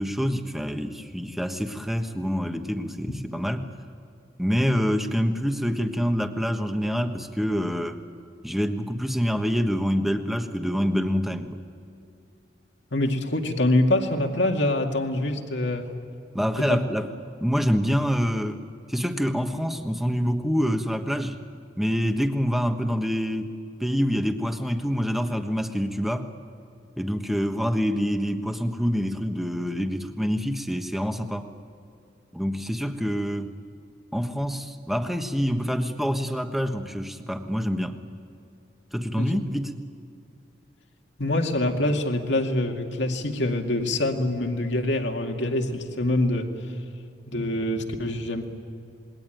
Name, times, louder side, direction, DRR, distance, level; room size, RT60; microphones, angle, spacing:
voice 1, 0.0-3.7 4.4-8.0 8.4-11.6 16.3-17.1 17.4-18.6 18.9-21.4 21.8-23.5 23.8-26.3 27.0-31.5 32.3-33.5 34.1-38.0 38.9-39.7, equal, ahead, 6 dB, 1.3 m, -26 dB
voice 2, 12.9-15.9 16.6-16.8 39.2-39.4 41.2-46.5 47.3-48.5, left 1 dB, 75° left, 3 dB, 2.2 m, -25 dB
27.5 x 21.5 x 9.2 m, 2.6 s
head